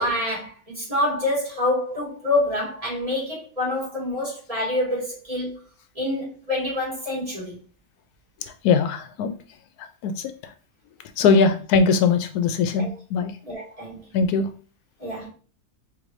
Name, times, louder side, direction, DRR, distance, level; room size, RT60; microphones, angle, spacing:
voice 1, 0.0-5.5 6.0-7.6 11.2-11.3 12.8-12.9 13.5-14.0 15.0-15.3, left 1 dB, 25° right, 2.0 m, -26 dB
voice 2, 8.4-9.3 9.8-10.5 11.2-13.3 14.1-14.5, left 5 dB, 90° left, 1.1 m, -21 dB
4.7 x 3.1 x 2.6 m
omnidirectional pair, 1.6 m